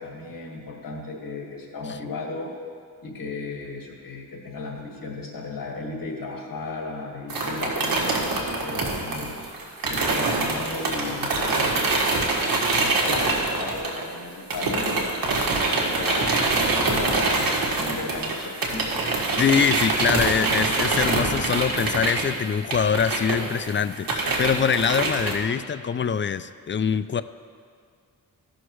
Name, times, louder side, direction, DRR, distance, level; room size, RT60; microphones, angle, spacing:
voice 1, 0.0-2.5 3.0-9.4 9.8-15.2 15.6-19.1, left 3 dB, 70° left, -1 dB, 2.0 m, -35 dB
sound 1, 7.3-14.2 14.5-25.3, right 3 dB, 75° right, 1.7 m, -25 dB
voice 2, 19.4-27.2, left 7 dB, 35° left, 13 dB, 0.4 m, -24 dB
16.5 x 6.4 x 3.1 m, 2.1 s
cardioid pair, 65°, 35 cm